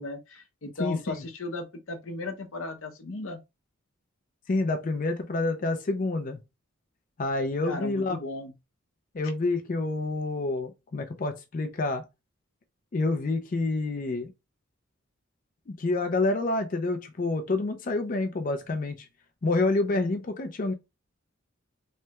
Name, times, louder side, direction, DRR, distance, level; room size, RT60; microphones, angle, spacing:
voice 1, 0.0-3.4 7.7-8.5, left 2 dB, 70° left, 0.7 m, -36 dB
voice 2, 0.8-1.2 4.5-6.4 7.2-8.2 9.1-12.0 12.9-14.3 15.7-19.1 19.4-20.7, left 2 dB, 40° left, 0.4 m, -28 dB
3.2 x 2.2 x 2.8 m
head